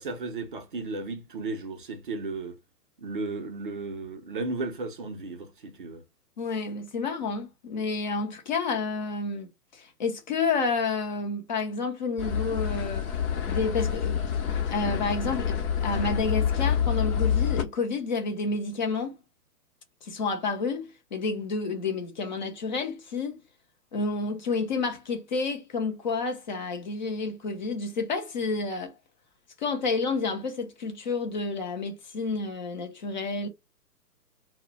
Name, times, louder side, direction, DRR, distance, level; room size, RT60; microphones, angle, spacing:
voice 1, 0.0-2.6 3.0-6.0, right 3 dB, 35° right, 0.4 m, -34 dB
voice 2, 6.4-13.0 13.5-14.3 14.7-19.2 20.0-23.4 23.9-28.9 29.6-33.5, left 4 dB, 30° left, 0.5 m, -30 dB
sound 1, 12.2-17.6, left 8 dB, 60° left, 0.7 m, -27 dB
2.1 x 2.0 x 3.7 m
hypercardioid pair, 145°, 48 cm